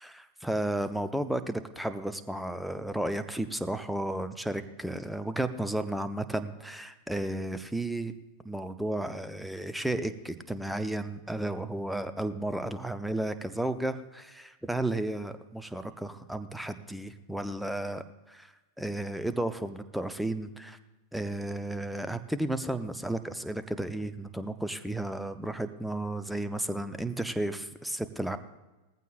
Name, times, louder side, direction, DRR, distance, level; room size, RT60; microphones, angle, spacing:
voice 1, 0.0-8.1 8.4-18.5 18.8-20.8 21.1-28.4, right 1 dB, ahead, 10 dB, 0.8 m, -33 dB
19.0 x 15.0 x 2.5 m, 1.1 s
figure-of-eight pair, 90°, 0 cm